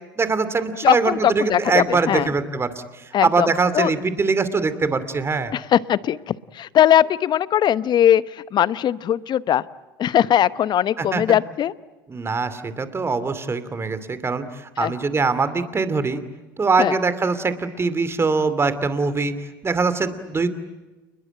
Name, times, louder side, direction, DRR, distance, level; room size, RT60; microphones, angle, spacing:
voice 1, 0.2-2.7 3.2-5.5 11.0-11.2 12.1-14.4 14.8-16.2 16.6-19.4 19.6-20.5, right 4 dB, 20° right, 13 dB, 2.6 m, -22 dB
voice 2, 0.8-2.3 3.1-3.5 3.7-3.9 5.5-9.6 10.0-11.7 14.8-14.9 16.8-16.9, left 10 dB, 40° left, 17 dB, 0.9 m, -20 dB
29.0 x 21.0 x 9.1 m, 1.2 s
hypercardioid pair, 75°, 11 cm